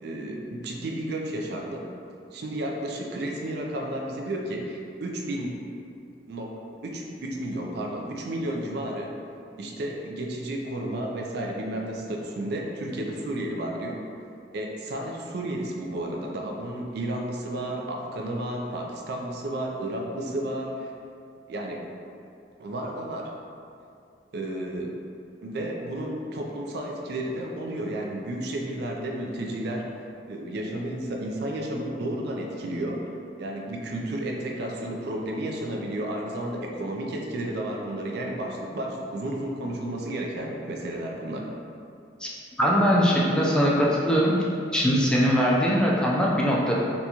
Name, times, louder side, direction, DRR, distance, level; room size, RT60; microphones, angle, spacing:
voice 1, 0.0-1.9 2.3-5.6 6.3-6.5 6.8-9.1 9.6-14.0 14.5-20.9 21.5-21.9 22.6-23.3 24.3-24.9 25.4-29.9 30.3-33.0 33.4-41.5, right 1 dB, 65° right, 0 dB, 0.4 m, -32 dB
voice 2, 42.6-44.4 44.7-46.7, equal, 5° left, -5 dB, 0.3 m, -21 dB
4.0 x 2.3 x 2.8 m, 2.5 s
head